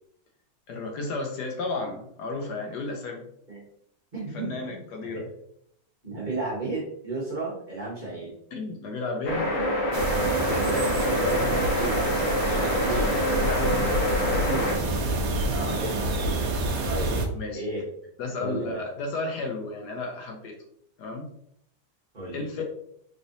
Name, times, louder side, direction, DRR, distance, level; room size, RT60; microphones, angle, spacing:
voice 1, 0.7-3.3 4.3-5.3 8.5-9.5 11.1-11.5 12.5-12.6 12.9-14.7 17.3-17.6 18.2-20.6 21.0-21.3 22.3-22.6, left 3 dB, 70° left, 2 dB, 1.2 m, -33 dB
voice 2, 4.1-4.8 5.1-5.2 6.0-8.3 10.3-10.9 11.3-12.1 12.6-13.1 15.5-16.1 16.8-17.1 17.5-17.8 18.4-18.8 22.1-22.4, right 2 dB, 30° right, -6 dB, 1.3 m, -33 dB
sound 1, 9.2-14.8, equal, 50° left, 0.9 m, -26 dB
sound 2, 9.9-17.3, right 2 dB, 70° right, 1.2 m, -28 dB
3.7 x 3.3 x 2.6 m, 0.70 s
omnidirectional pair, 1.9 m